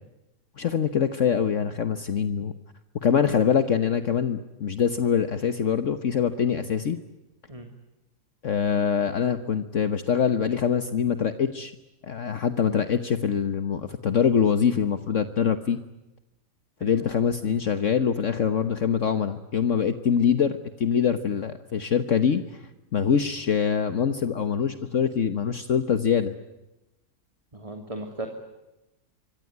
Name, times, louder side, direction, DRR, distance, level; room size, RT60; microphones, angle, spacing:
voice 1, 0.6-2.5 3.0-7.0 8.4-11.7 12.0-15.8 16.8-22.6 22.9-26.3, left 7 dB, 60° left, 10 dB, 1.4 m, -24 dB
voice 2, 27.5-28.3, right 2 dB, 20° right, 5 dB, 2.8 m, -36 dB
26.5 x 23.5 x 9.5 m, 0.98 s
omnidirectional pair, 1.6 m